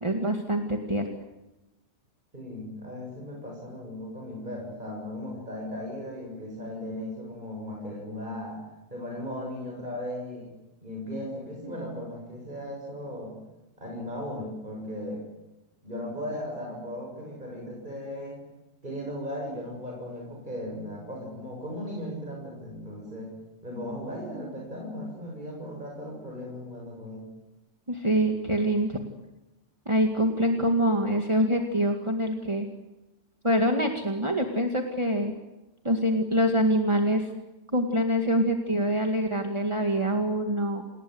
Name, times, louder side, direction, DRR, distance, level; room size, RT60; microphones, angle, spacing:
voice 1, 0.0-1.0 27.9-29.0 29.9-32.7 33.4-35.3 35.8-37.3 37.7-40.8, equal, 25° right, 3 dB, 2.2 m, -25 dB
voice 2, 2.3-8.6 8.9-10.5 10.8-13.3 13.8-15.2 15.8-18.4 18.8-23.3 23.6-27.3, left 1 dB, 45° right, -1 dB, 7.3 m, -37 dB
28.5 x 20.5 x 8.0 m, 1.0 s
omnidirectional pair, 1.2 m